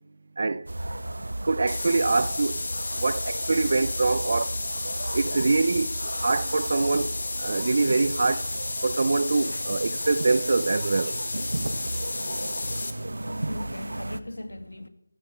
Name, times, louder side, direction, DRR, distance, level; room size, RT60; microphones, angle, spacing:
sound 1, 0.7-14.2, right 1 dB, 80° right, 1.0 m, -35 dB
voice 1, 1.4-2.6 2.9-4.6 5.1-7.1 7.4-8.5 8.8-11.2, right 3 dB, 45° right, 0.6 m, -24 dB
sound 2, 1.7-12.9, left 3 dB, 50° left, 1.8 m, -32 dB
voice 2, 13.2-14.9, left 1 dB, 90° left, 1.9 m, -39 dB
15.0 x 8.7 x 8.4 m
figure-of-eight pair, 170°, 0 cm